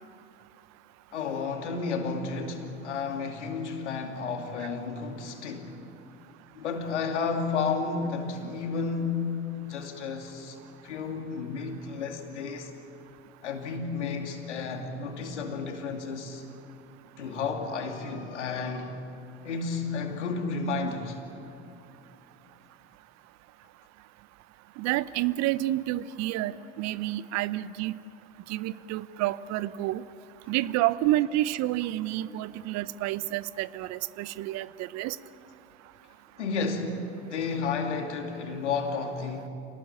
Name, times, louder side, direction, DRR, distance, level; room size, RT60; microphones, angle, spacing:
voice 1, 1.1-5.8 6.6-9.3 9.6-10.6 10.8-12.7 13.4-16.4 17.2-19.0 19.4-21.2 36.4-37.0 37.3-39.5, left 4 dB, 80° left, 2.7 m, -32 dB
voice 2, 24.8-28.0 28.5-30.0 30.5-35.2, right 15 dB, 50° right, 0.8 m, -29 dB
27.0 x 19.0 x 8.8 m
hypercardioid pair, 70°, 35 cm